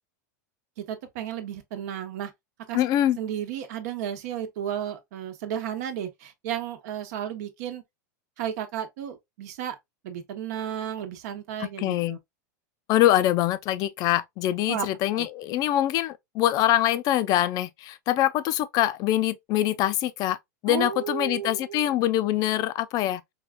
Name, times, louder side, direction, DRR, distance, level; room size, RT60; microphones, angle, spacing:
voice 1, 0.8-2.3 2.7-2.8 3.2-7.8 8.4-9.8 10.0-12.2 14.7-14.9 15.1-15.3 20.7-21.9, right 10 dB, 65° right, 0.8 m, -33 dB
voice 2, 2.7-3.2 11.6-12.2 12.9-20.4 20.6-23.2, left 13 dB, 40° left, 0.4 m, -24 dB
4.5 x 2.3 x 2.2 m
supercardioid pair, 125°, 10 cm